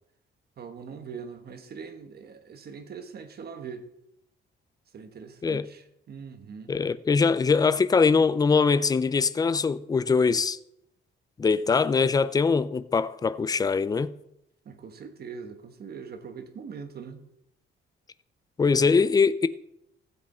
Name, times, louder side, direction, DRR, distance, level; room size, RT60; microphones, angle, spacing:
voice 1, 0.6-3.9 4.9-6.7 14.6-17.2 18.8-18.9, right 6 dB, 50° right, 1.3 m, -42 dB
voice 2, 6.7-10.6 11.4-14.1 18.6-19.5, left 5 dB, 20° left, 0.4 m, -22 dB
15.0 x 7.8 x 4.3 m
cardioid pair, 150°, 21 cm